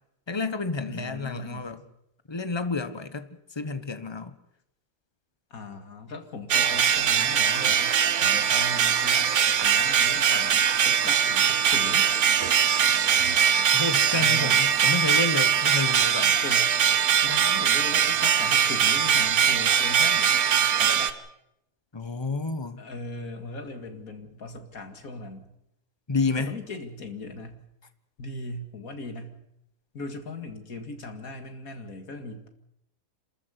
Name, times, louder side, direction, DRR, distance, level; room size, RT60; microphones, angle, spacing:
voice 1, 0.3-1.8 2.3-3.3 3.5-4.3 13.7-16.4 21.9-22.8 26.1-26.5, left 3 dB, 20° left, 11 dB, 1.2 m, -30 dB
voice 2, 0.9-1.7 5.5-12.1 12.8-13.0 14.1-14.6 16.4-16.7 17.2-20.3 20.8-21.2 22.0-22.1 22.8-25.5 26.4-27.6 28.2-29.4 29.9-32.5, left 2 dB, 80° left, 6 dB, 2.5 m, -38 dB
sound 1, 6.5-21.1, right 8 dB, 85° right, 1.5 m, -22 dB
27.0 x 14.0 x 8.3 m, 0.81 s
omnidirectional pair, 1.5 m